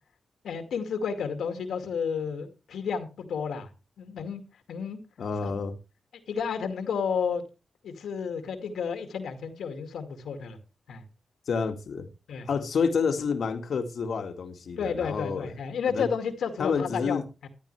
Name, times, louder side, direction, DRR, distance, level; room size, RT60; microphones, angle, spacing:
voice 1, 0.4-3.7 4.0-4.4 4.7-5.0 5.4-5.5 6.3-7.4 7.8-10.6 10.9-11.0 12.3-12.5 14.8-17.5, left 6 dB, 90° left, 2.3 m, -31 dB
voice 2, 5.2-5.7 11.5-12.1 12.5-15.5 15.9-16.1 16.6-17.2, left 5 dB, 75° left, 2.0 m, -29 dB
14.0 x 12.5 x 3.3 m
cardioid pair, 65°, 0 cm